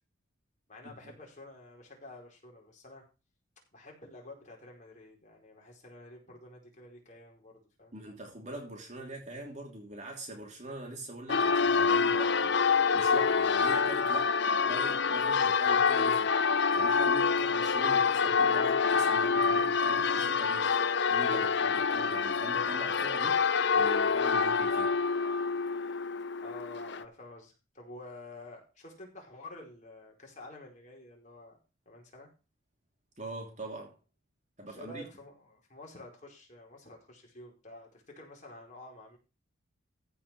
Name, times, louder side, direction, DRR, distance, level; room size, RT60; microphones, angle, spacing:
voice 1, 0.7-3.0 3.7-7.9 26.4-31.6 31.9-32.3 34.7-39.2, left 2 dB, 35° left, 4.6 m, -49 dB
voice 2, 7.9-12.6 12.9-16.4 16.7-25.0 33.2-34.0 34.6-35.0, right 1 dB, 35° right, 2.9 m, -43 dB
Church bell, 11.3-27.0, left 5 dB, 55° left, 0.6 m, -27 dB
15.0 x 5.5 x 6.0 m
head